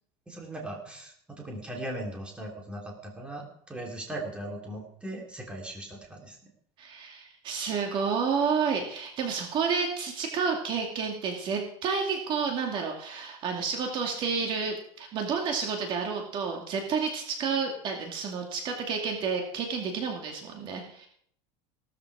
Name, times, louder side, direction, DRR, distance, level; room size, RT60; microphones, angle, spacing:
voice 1, 0.3-6.4, right 1 dB, 5° right, 0 dB, 3.2 m, -39 dB
voice 2, 6.8-21.1, right 5 dB, 35° right, 1 dB, 2.4 m, -30 dB
17.5 x 13.5 x 4.9 m, 0.64 s
supercardioid pair, 165°, 15 cm